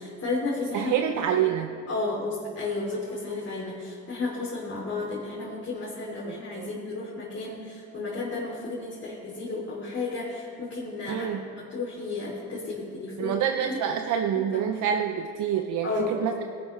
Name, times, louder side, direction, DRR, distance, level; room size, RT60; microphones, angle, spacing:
voice 1, 0.0-1.0 1.4-1.5 1.9-14.0 14.5-14.6 15.8-16.2, left 3 dB, 50° left, -6 dB, 2.9 m, -33 dB
voice 2, 0.7-1.7 6.3-6.7 11.1-11.4 13.2-16.4, right 9 dB, 80° right, 5 dB, 0.7 m, -27 dB
18.5 x 11.5 x 3.2 m, 2.7 s
cardioid pair, 90°, 30 cm